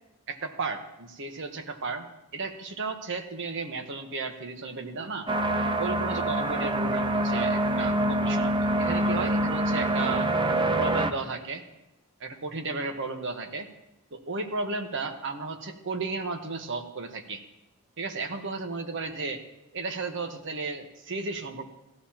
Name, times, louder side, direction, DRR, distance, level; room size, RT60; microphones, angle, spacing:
voice 1, 0.3-2.1 2.3-5.3 5.8-10.3 10.8-11.6 12.2-13.7 14.1-17.4 18.0-19.4 19.7-21.6, right 3 dB, 55° right, 5 dB, 1.1 m, -34 dB
sound 1, 5.3-11.1, right 1 dB, 20° right, 0.6 m, -25 dB
16.0 x 12.5 x 2.9 m, 0.91 s
head